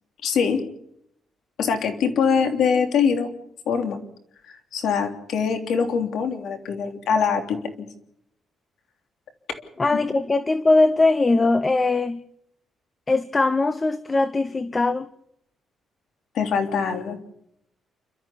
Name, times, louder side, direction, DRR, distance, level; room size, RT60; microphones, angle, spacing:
voice 1, 0.2-0.6 1.6-3.3 3.7-4.0 4.7-7.9 16.3-17.2, left 6 dB, 65° left, 6 dB, 3.2 m, -23 dB
voice 2, 9.8-12.2 13.1-15.1, left 3 dB, 20° left, 14 dB, 0.7 m, -20 dB
29.5 x 13.0 x 7.0 m, 0.73 s
cardioid pair, 150°, 0 cm